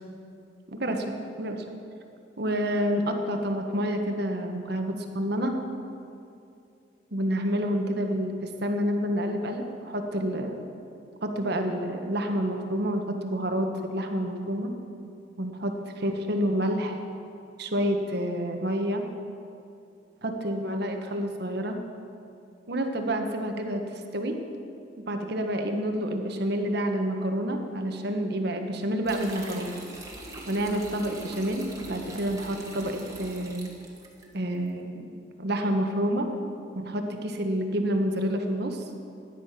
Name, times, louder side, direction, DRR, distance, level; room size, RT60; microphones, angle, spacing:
voice 1, 0.7-1.6 2.4-5.5 7.1-8.3 8.6-10.7 11.2-14.7 15.4-17.0 17.6-19.0 20.2-21.8 22.7-23.8 24.1-24.4 25.1-29.7 30.5-33.7 34.3-35.1 35.4-36.3 36.7-38.8, equal, 60° right, 4 dB, 1.5 m, -28 dB
Water pouring, 29.0-34.3, right 2 dB, 20° right, 2.0 m, -42 dB
17.0 x 10.5 x 5.9 m, 2.6 s
head